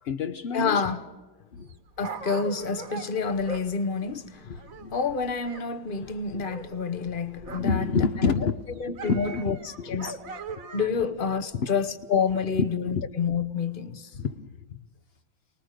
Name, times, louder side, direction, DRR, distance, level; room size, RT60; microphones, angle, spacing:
voice 1, 0.0-0.8 1.5-1.7 4.5-4.9 6.0-6.4 7.4-10.0 11.5-11.7 12.6-13.1 14.1-14.8, left 5 dB, 70° left, 0.6 m, -29 dB
voice 2, 0.5-1.0 2.0-4.6 4.9-10.2 10.7-14.1, left 5 dB, 40° left, 0.8 m, -28 dB
Dog, 1.6-5.7 5.9-7.9 8.2-11.1 11.7-11.8, right 4 dB, 45° right, 1.5 m, -41 dB
24.5 x 20.0 x 6.5 m
omnidirectional pair, 2.2 m